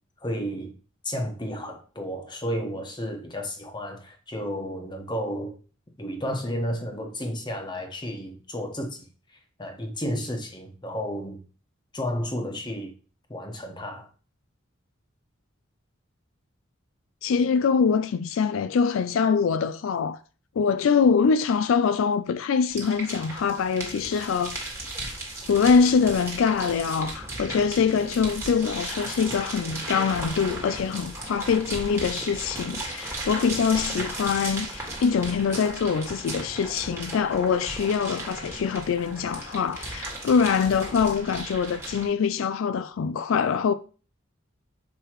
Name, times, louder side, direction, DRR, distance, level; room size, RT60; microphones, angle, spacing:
voice 1, 0.2-0.7 1.0-5.6 6.0-9.1 9.6-11.4 11.9-12.9 13.3-14.1, equal, 20° left, 1.2 m, -32 dB
voice 2, 17.2-20.2 20.6-24.6 25.5-43.7, left 6 dB, 80° left, 0.4 m, -24 dB
sound 1, 22.7-42.1, right 2 dB, 15° right, 1.7 m, -36 dB
6.7 x 4.9 x 3.0 m
head